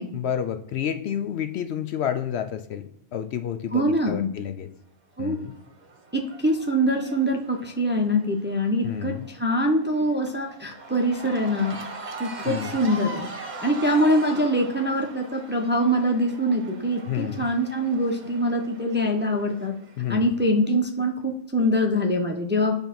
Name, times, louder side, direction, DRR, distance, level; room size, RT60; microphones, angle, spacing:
voice 1, 0.1-4.7 5.2-5.5 8.8-9.3 12.4-12.8 17.1-17.5 20.0-20.3, left 9 dB, 65° left, 9 dB, 0.8 m, -30 dB
voice 2, 3.7-4.3 5.2-5.4 6.1-11.8 12.2-13.3 13.6-19.7 20.1-22.7, equal, 10° right, 2 dB, 0.6 m, -24 dB
Cheering / Crowd, 5.2-20.5, right 3 dB, 40° right, 1.0 m, -41 dB
9.0 x 3.5 x 5.9 m, 0.77 s
omnidirectional pair, 1.3 m